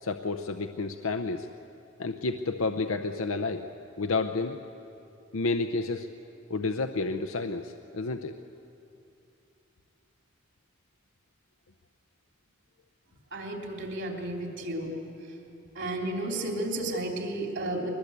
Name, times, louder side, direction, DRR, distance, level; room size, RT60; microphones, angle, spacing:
voice 1, 0.0-1.5 2.0-3.7 4.0-4.6 5.3-6.1 6.5-8.4, left 3 dB, 70° left, 7 dB, 0.7 m, -30 dB
voice 2, 13.3-15.0 15.7-17.9, right 1 dB, 60° right, 2 dB, 3.3 m, -32 dB
22.5 x 20.5 x 8.2 m, 2.7 s
head